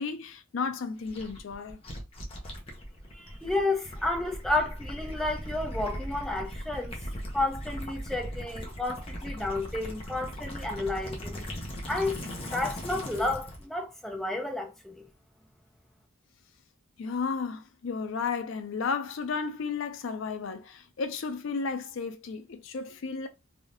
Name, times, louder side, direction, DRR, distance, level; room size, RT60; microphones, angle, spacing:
voice 1, 0.0-1.8 17.0-23.3, left 5 dB, 65° left, 0.4 m, -33 dB
Gurgling / Liquid, 1.1-13.6, equal, 30° left, 0.9 m, -39 dB
voice 2, 3.1-6.9 7.3-11.4 11.9-12.2 12.4-15.1, left 2 dB, ahead, 0.7 m, -31 dB
3.4 x 2.7 x 2.6 m
head